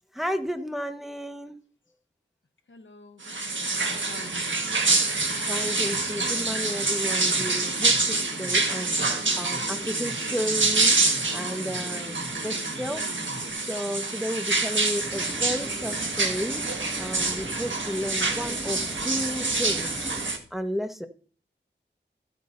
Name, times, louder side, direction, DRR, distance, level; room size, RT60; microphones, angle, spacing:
voice 1, 0.1-1.5 4.6-4.7 5.5-10.9 11.3-13.0 13.6-20.1 20.5-21.1, equal, ahead, 6 dB, 1.5 m, -33 dB
voice 2, 2.7-4.9, left 3 dB, 90° left, 7 dB, 1.2 m, -48 dB
sound 1, 3.2-20.4, right 3 dB, 85° right, 1.6 m, -26 dB
sound 2, 7.1-13.5, left 2 dB, 70° left, 2.6 m, -42 dB
sound 3, 14.9-20.3, right 1 dB, 20° right, 2.4 m, -40 dB
15.0 x 9.4 x 2.7 m, 0.42 s
wide cardioid pair, 40°, 19 cm